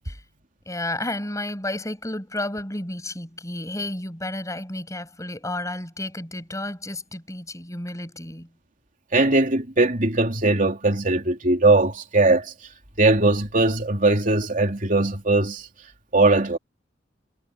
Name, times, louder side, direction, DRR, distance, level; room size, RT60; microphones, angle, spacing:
voice 1, 0.7-8.5, left 1 dB, 20° left, 7.7 m, -31 dB
voice 2, 9.1-12.5 13.0-15.7 16.1-16.6, right 2 dB, 45° right, 3.3 m, -20 dB
head